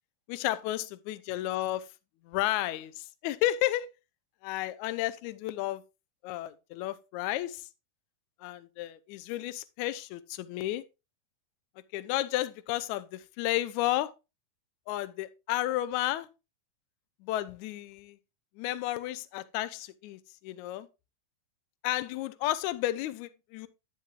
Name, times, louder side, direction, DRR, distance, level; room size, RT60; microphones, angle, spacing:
voice 1, 0.3-1.9 2.2-3.9 4.4-5.8 6.2-7.7 8.4-10.8 11.9-14.1 14.9-16.3 17.2-18.2 18.6-20.9 21.8-23.7, left 15 dB, 85° left, 1.7 m, -32 dB
10.5 x 9.1 x 2.4 m
omnidirectional pair, 4.0 m